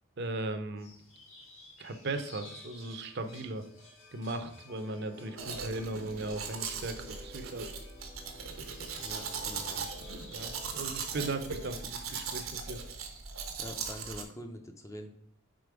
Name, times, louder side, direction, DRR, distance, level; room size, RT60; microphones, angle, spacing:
voice 1, 0.2-0.9 1.8-3.7 4.1-7.7 10.3-12.8, right 2 dB, 55° right, 8 dB, 0.6 m, -37 dB
sound 1, 0.8-12.5, left 2 dB, 75° left, 2.1 m, -55 dB
sound 2, 4.7-11.8, left 2 dB, 45° left, 1.0 m, -53 dB
Domestic sounds home sounds, 5.4-14.2, right 5 dB, 85° right, 1.0 m, -39 dB
voice 2, 9.0-9.9 13.6-15.1, equal, 15° left, 5 dB, 0.5 m, -45 dB
5.1 x 4.1 x 4.7 m, 0.67 s
head